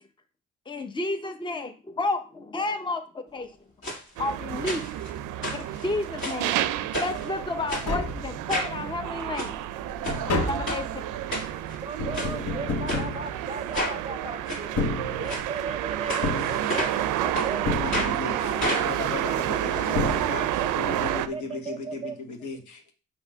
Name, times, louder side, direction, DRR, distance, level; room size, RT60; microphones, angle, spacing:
voice 1, 0.7-3.6 4.2-4.8 5.5-6.5 7.0-9.5 10.3-10.9, left 2 dB, 15° left, 7 dB, 0.7 m, -31 dB
sound 1, 3.8-4.0 4.7-5.1 5.4-6.5 6.9-7.3 7.7-7.9 8.5-8.8 9.2-9.5 10.0-10.2 10.7-10.8 11.3-11.8 12.1-12.3 12.9-13.0 13.7-14.0 14.5-14.6 15.2-15.4 16.1-17.0 17.3-17.5 17.9-18.1 18.6-20.1 20.4-20.5 20.8-20.9, left 1 dB, 40° left, 2.2 m, -31 dB
sound 2, 4.2-21.3, right 12 dB, 85° right, 0.5 m, -30 dB
Tap, 7.4-7.5 7.7-8.8 9.2-14.0 14.6-15.7 16.2-17.2 17.7-18.5 19.5-19.6 19.9-20.8 21.0-21.1, left 2 dB, 55° left, 1.2 m, -31 dB
voice 2, 11.8-14.8 15.2-18.6 19.3-19.4 19.9-22.1, right 4 dB, 20° right, 9 dB, 0.6 m, -37 dB
voice 3, 17.7-22.9, left 3 dB, 75° left, 3 dB, 1.5 m, -36 dB
5.9 x 3.0 x 5.3 m, 0.34 s
cardioid pair, 90°, 30 cm